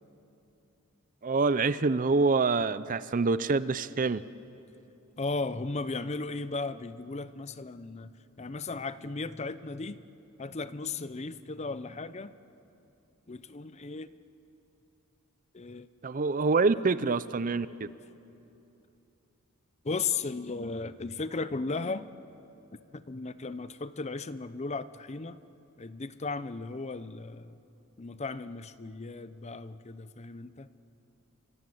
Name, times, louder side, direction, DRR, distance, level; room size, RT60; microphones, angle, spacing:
voice 1, 1.2-4.2 16.0-17.7, right 4 dB, 35° right, 16 dB, 0.5 m, -26 dB
voice 2, 5.2-8.1 8.4-10.0 10.4-12.3 13.3-14.1 15.5-15.9 17.0-17.1 19.8-22.1 22.9-25.4 25.8-27.6 28.0-30.7, left 3 dB, 30° left, 14 dB, 0.6 m, -36 dB
28.0 x 25.0 x 7.9 m, 2.9 s
head